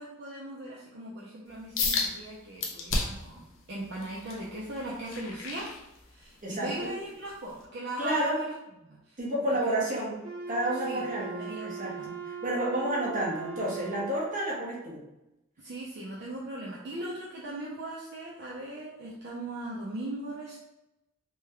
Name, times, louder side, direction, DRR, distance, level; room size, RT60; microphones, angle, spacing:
voice 1, 0.0-5.7 6.1-8.5 9.1-9.2 9.6-10.1 10.9-12.1 15.6-20.6, right 1 dB, 55° right, -5 dB, 0.5 m, -39 dB
sound 1, 1.8-2.1 2.6-3.3 3.8-6.4 6.8-7.1 7.6-7.7, left 3 dB, 65° left, 0.6 m, -31 dB
voice 2, 6.4-6.9 8.0-8.4 9.2-10.2 10.5-12.1 12.4-15.0, right 1 dB, 40° right, -4 dB, 0.9 m, -30 dB
Wind instrument woodwind instrument, 10.2-14.5, right 7 dB, 80° right, 1.0 m, -40 dB
3.3 x 2.2 x 3.2 m, 0.90 s
head